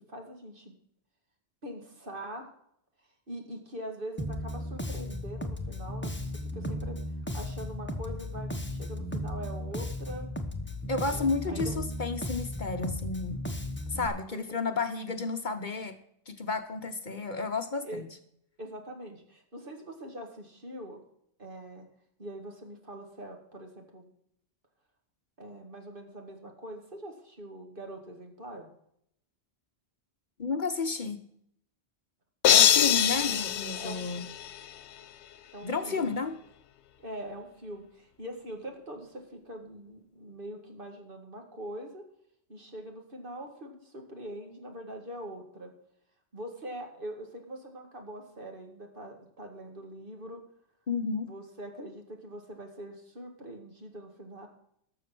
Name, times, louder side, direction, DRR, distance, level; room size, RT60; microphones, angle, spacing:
voice 1, 0.1-0.7 1.6-2.5 3.3-7.0 7.3-10.3 10.8-11.8 14.3-14.8 17.8-18.0 18.6-21.0 21.4-21.9 22.2-24.1 25.4-28.7 32.5-33.0 33.8-34.1 35.5-36.2 37.0-42.0 42.5-45.7 46.3-50.4 51.2-54.5, right 1 dB, 50° right, 3 dB, 2.3 m, -43 dB
Bass guitar, 4.2-14.1, left 1 dB, 10° left, 1.1 m, -35 dB
voice 2, 10.9-13.4 13.9-15.9 16.3-18.1 30.4-31.2 32.5-34.2 35.6-36.3 50.9-51.3, left 4 dB, 50° left, 7 dB, 1.0 m, -32 dB
sound 1, 32.4-34.8, left 10 dB, 85° left, 0.9 m, -24 dB
12.5 x 6.9 x 6.0 m, 0.71 s
omnidirectional pair, 1.1 m